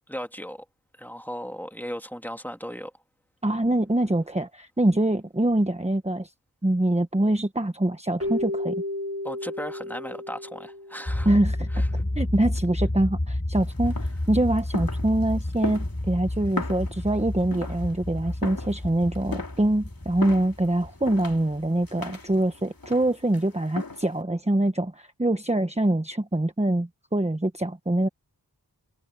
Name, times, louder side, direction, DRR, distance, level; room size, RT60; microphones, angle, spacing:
voice 1, 0.1-0.6 1.0-2.9 9.2-11.3 11.7-12.0, equal, 5° left, 2.2 m, -36 dB
voice 2, 3.4-6.3 6.6-8.7 11.2-11.8 12.2-28.1, right 1 dB, 15° right, 1.2 m, -24 dB
Keyboard (musical), 8.2-11.5, left 1 dB, 35° right, 2.8 m, -33 dB
sound 1, 11.1-22.3, left 1 dB, 30° left, 5.2 m, -30 dB
sound 2, 13.5-24.2, left 3 dB, 60° left, 2.7 m, -38 dB
wide cardioid pair, 45°, 40 cm